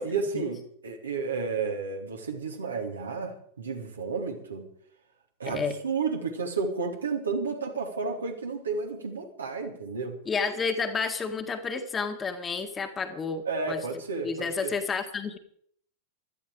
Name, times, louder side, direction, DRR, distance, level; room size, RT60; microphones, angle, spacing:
voice 1, 0.0-4.7 5.4-10.2 13.5-14.7, right 4 dB, 75° right, 2 dB, 2.6 m, -32 dB
voice 2, 5.5-5.8 10.3-13.8 14.2-15.4, left 5 dB, 20° left, 6 dB, 1.8 m, -30 dB
16.5 x 12.5 x 4.9 m, 0.63 s
figure-of-eight pair, 90°, 0 cm